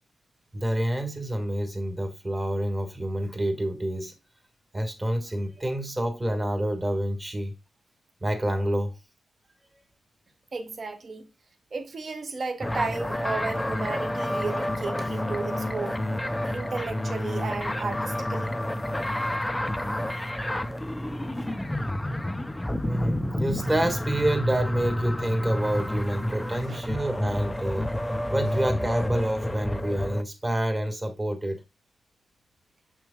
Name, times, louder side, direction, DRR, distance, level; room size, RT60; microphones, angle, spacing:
voice 1, 0.5-4.1 4.7-7.5 8.2-8.9 22.8-27.9 28.3-31.6, right 1 dB, 20° right, 1.5 m, -28 dB
voice 2, 10.5-11.3 11.7-16.0 16.5-18.6 26.7-26.8, right 4 dB, 45° right, 1.1 m, -33 dB
sound 1, 12.6-30.2, left 1 dB, 10° left, 0.4 m, -29 dB
7.1 x 6.1 x 2.2 m
wide cardioid pair, 145°, 0 cm